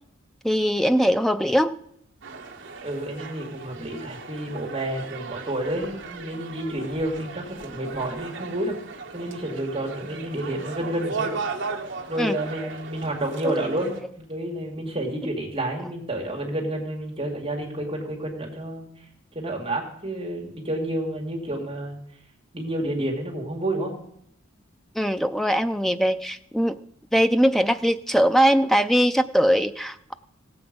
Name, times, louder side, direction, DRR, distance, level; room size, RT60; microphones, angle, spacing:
voice 1, 0.4-1.8 12.2-12.7 13.4-13.5 25.0-26.8 27.1-30.1, equal, ahead, 10 dB, 0.4 m, -21 dB
sound 1, 2.2-14.0, right 4 dB, 60° right, 1.4 m, -37 dB
voice 2, 2.8-8.8 9.1-11.3 12.1-18.9 19.3-22.0 22.5-23.9, right 1 dB, 25° right, 0 dB, 2.2 m, -30 dB
17.0 x 7.8 x 5.3 m, 0.73 s
head